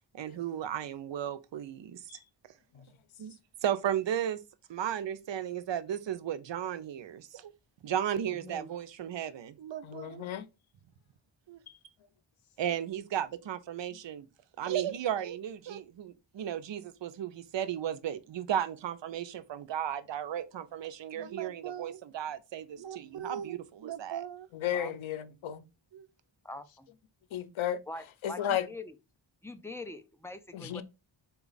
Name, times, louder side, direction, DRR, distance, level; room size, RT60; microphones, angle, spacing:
voice 1, 0.1-2.0 3.2-3.3 3.6-4.4 4.7-7.5 7.8-10.3 11.5-11.6 12.6-14.3 14.6-24.5 25.9-26.0, right 10 dB, 70° right, 0.5 m, -35 dB
voice 2, 8.3-8.7 24.7-24.9 26.4-26.9 27.9-28.9 29.4-30.8, left 2 dB, 5° left, 0.4 m, -43 dB
voice 3, 9.8-10.5 11.7-11.8 21.2-21.3 24.5-25.6 27.3-27.8 28.2-28.7 30.5-30.8, left 10 dB, 90° left, 0.6 m, -33 dB
4.0 x 2.3 x 3.8 m
wide cardioid pair, 80°, 46 cm